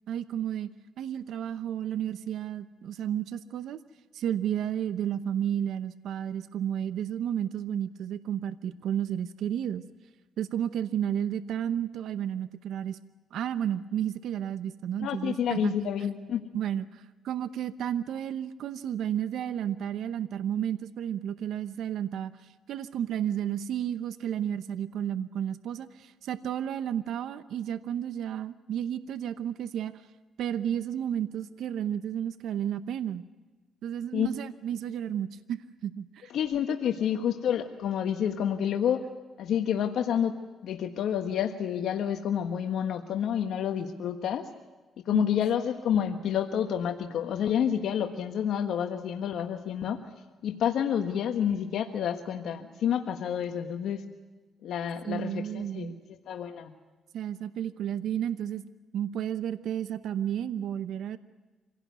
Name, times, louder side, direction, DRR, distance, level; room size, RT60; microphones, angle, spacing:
voice 1, 0.1-0.7 1.0-3.8 4.1-9.8 10.4-13.0 13.3-15.7 16.5-22.3 22.7-29.9 30.4-33.2 33.8-36.3 45.1-45.2 55.1-56.0 57.1-58.6 58.9-61.2, right 10 dB, 75° right, 13 dB, 0.8 m, -32 dB
voice 2, 15.0-16.5 34.1-34.3 36.3-39.0 39.4-40.4 40.6-44.4 45.1-50.0 50.4-54.0 54.6-55.9 56.3-56.7, left 9 dB, 75° left, 6 dB, 1.4 m, -29 dB
26.0 x 17.0 x 9.5 m, 1.2 s
cardioid pair, 90°, 0 cm